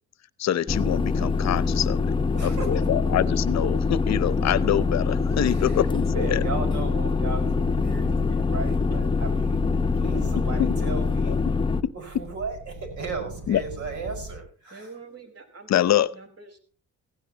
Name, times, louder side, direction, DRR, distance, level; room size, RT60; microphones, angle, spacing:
voice 1, 0.4-2.0 2.4-6.4 10.6-10.7 11.3-11.4 11.8-11.9 13.5-13.6 15.7-16.1, left 11 dB, 60° left, 18 dB, 0.8 m, -25 dB
sound 1, 0.7-11.8, left 4 dB, 15° left, 0.8 m, -24 dB
voice 2, 2.3-2.9 5.4-9.6 9.9-11.4 11.9-14.9, right 4 dB, 70° right, 4 dB, 5.5 m, -36 dB
sound 2, 8.8-14.4, right 1 dB, 90° right, 6.4 m, -42 dB
voice 3, 14.7-16.6, right 3 dB, 55° right, 5 dB, 4.8 m, -44 dB
16.0 x 16.0 x 2.9 m, 0.39 s
cardioid pair, 90°, 30 cm